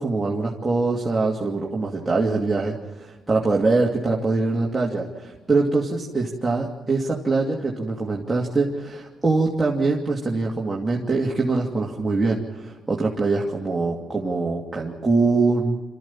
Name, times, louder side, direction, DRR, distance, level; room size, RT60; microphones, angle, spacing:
voice 1, 0.0-15.8, right 3 dB, 20° right, -3 dB, 2.7 m, -23 dB
27.0 x 14.0 x 7.3 m, 1.2 s
cardioid pair, 90°, 0 cm